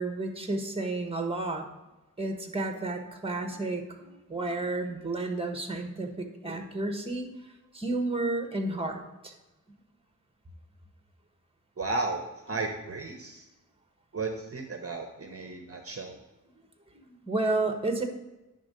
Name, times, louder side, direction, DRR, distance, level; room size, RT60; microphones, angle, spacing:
voice 1, 0.0-1.7 2.2-7.3 7.7-9.3 17.0-18.0, right 2 dB, 15° right, 4 dB, 1.1 m, -31 dB
voice 2, 11.8-13.5 14.1-16.2, right 3 dB, 45° right, 5 dB, 0.8 m, -34 dB
9.6 x 3.7 x 6.6 m, 1.0 s
wide cardioid pair, 120°, 33 cm